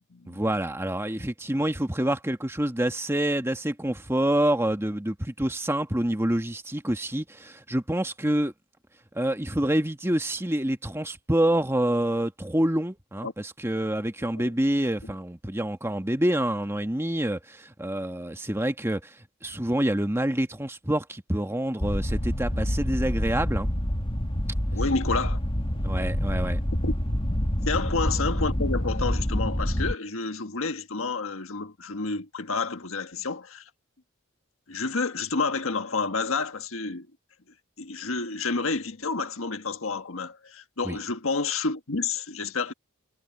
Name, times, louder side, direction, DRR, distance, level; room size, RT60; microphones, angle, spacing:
voice 1, 0.3-8.5 9.1-19.0 19.4-23.7 25.8-26.6 40.8-41.0, right 1 dB, 10° right, 1.4 m, -27 dB
sound 1, 21.8-29.9, equal, 25° left, 1.7 m, -27 dB
voice 2, 24.7-25.4 26.0-26.1 26.4-26.5 26.8-26.9 27.7-33.7 34.7-37.1 37.8-42.7, left 4 dB, 70° left, 1.5 m, -30 dB
head